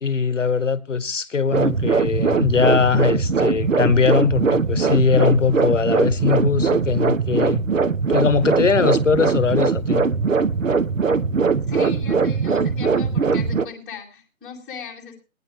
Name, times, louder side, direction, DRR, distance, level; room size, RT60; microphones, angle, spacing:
voice 1, 0.0-7.6 8.1-10.1, left 5 dB, 60° left, 0.9 m, -20 dB
sound 1, 1.5-13.6, right 5 dB, 70° right, 1.0 m, -21 dB
voice 2, 11.7-15.2, left 5 dB, ahead, 1.4 m, -38 dB
18.0 x 9.9 x 3.0 m
figure-of-eight pair, 155°, 41 cm